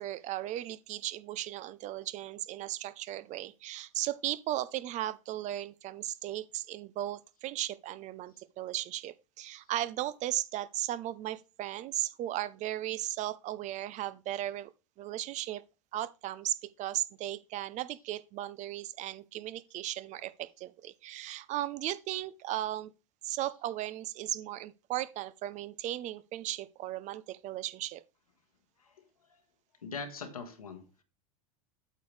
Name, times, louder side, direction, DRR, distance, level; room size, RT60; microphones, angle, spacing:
voice 1, 0.0-14.7 15.0-15.6 15.9-22.9 23.2-28.0, right 14 dB, 40° right, 0.7 m, -36 dB
voice 2, 29.8-31.0, left 4 dB, 90° left, 1.5 m, -41 dB
8.4 x 7.0 x 3.3 m
hypercardioid pair, 90°, 18 cm